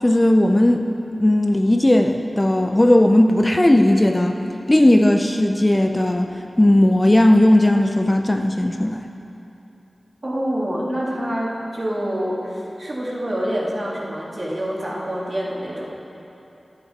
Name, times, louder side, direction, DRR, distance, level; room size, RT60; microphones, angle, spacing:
voice 1, 0.0-0.9 1.2-4.4 4.7-6.3 6.6-9.0, left 1 dB, 25° left, 4 dB, 0.5 m, -16 dB
voice 2, 10.2-15.9, equal, 45° right, -4 dB, 2.1 m, -26 dB
11.5 x 8.7 x 4.5 m, 3.0 s
wide cardioid pair, 60°, 0 cm